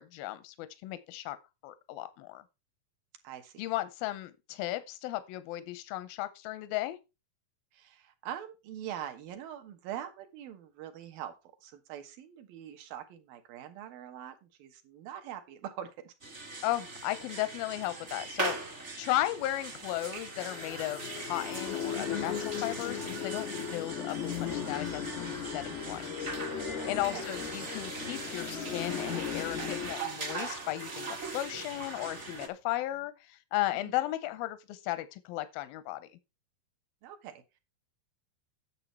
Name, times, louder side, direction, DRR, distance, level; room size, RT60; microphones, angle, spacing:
voice 1, 0.0-1.4 1.6-2.4 3.6-7.0 16.6-25.0 25.3-26.3 26.9-36.1, left 15 dB, 90° left, 2.5 m, -35 dB
voice 2, 3.2-3.6 7.7-11.3 11.6-16.4 27.1-27.3 33.7-34.0 37.0-37.4, right 10 dB, 80° right, 3.0 m, -43 dB
sound 1, 16.2-32.5, right 3 dB, 35° right, 1.0 m, -40 dB
sound 2, 19.1-19.2 20.3-29.9, left 8 dB, 45° left, 0.9 m, -37 dB
Chicken rooster, 20.1-21.9 28.0-29.8 32.1-32.2 32.4-32.7, left 5 dB, 60° left, 1.1 m, -53 dB
9.9 x 7.0 x 4.4 m
omnidirectional pair, 4.1 m